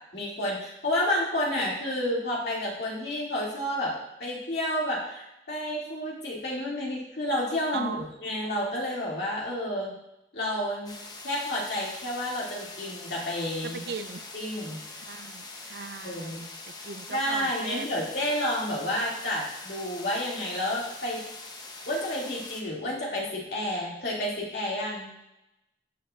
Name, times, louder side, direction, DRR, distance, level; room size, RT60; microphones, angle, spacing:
voice 1, 0.1-9.9 10.3-10.9 11.2-13.8 14.3-14.8 16.0-16.4 17.1-21.2 21.9-25.1, left 1 dB, 65° left, -4 dB, 2.4 m, -30 dB
voice 2, 7.7-8.0 13.6-14.2 15.0-16.5 16.8-17.9, right 5 dB, 60° right, 11 dB, 0.4 m, -38 dB
sound 1, 10.9-22.6, left 3 dB, 20° left, 0.7 m, -43 dB
13.0 x 6.5 x 2.4 m, 0.89 s
head